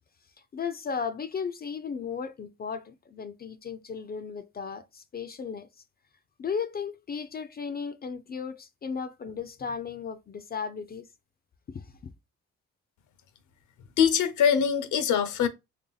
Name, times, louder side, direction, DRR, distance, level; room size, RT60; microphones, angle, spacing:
voice 1, 0.5-5.7 6.4-11.1 11.7-11.8, left 6 dB, 30° left, 0.4 m, -35 dB
voice 2, 14.0-15.5, left 8 dB, 75° left, 0.7 m, -23 dB
3.3 x 2.7 x 3.9 m
cardioid pair, 90°, 30 cm